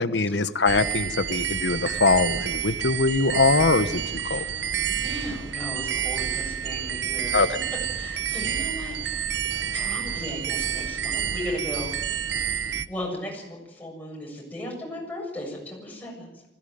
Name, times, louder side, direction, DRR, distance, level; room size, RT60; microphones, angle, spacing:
voice 1, 0.0-4.4 7.3-7.6 12.7-12.8, left 3 dB, 85° left, 12 dB, 1.1 m, -23 dB
sound 1, 0.7-12.9, right 8 dB, 90° right, 0.9 m, -29 dB
voice 2, 4.3-7.4 8.0-9.3 9.7-12.0 12.9-16.3, left 1 dB, 10° left, -2 dB, 7.3 m, -36 dB
20.5 x 16.5 x 9.3 m, 0.98 s
head